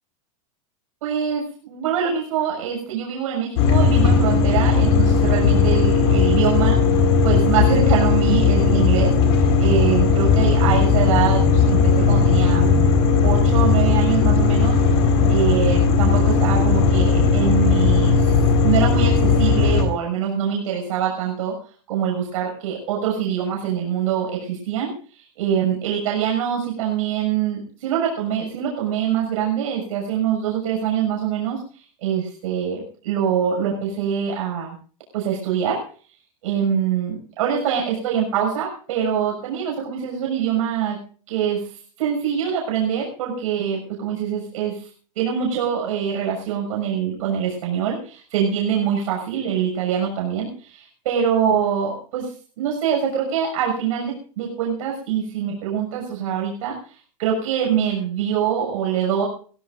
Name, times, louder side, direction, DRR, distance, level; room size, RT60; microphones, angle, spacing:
voice 1, 1.0-9.1 9.6-12.6 13.2-14.8 15.3-18.4 18.6-21.5 21.9-24.9 25.1-31.6 32.0-34.8 35.1-35.8 36.4-41.0 41.3-41.7 42.0-44.9 45.1-56.8 57.2-59.2, right 8 dB, 75° right, -1 dB, 6.5 m, -24 dB
sound 1, 3.6-19.8, left 5 dB, 55° left, 4.5 m, -17 dB
23.5 x 17.5 x 2.6 m, 0.42 s
supercardioid pair, 175°, 17 cm